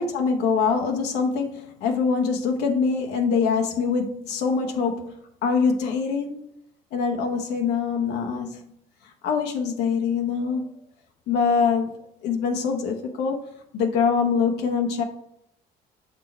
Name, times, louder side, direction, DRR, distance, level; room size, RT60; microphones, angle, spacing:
voice 1, 0.0-5.1 5.4-6.5 6.9-8.6 9.2-10.7 11.3-11.9 12.2-13.4 13.7-15.0, left 5 dB, 85° left, 3 dB, 1.0 m, -24 dB
6.7 x 4.4 x 4.3 m, 0.74 s
cardioid pair, 110°, 17 cm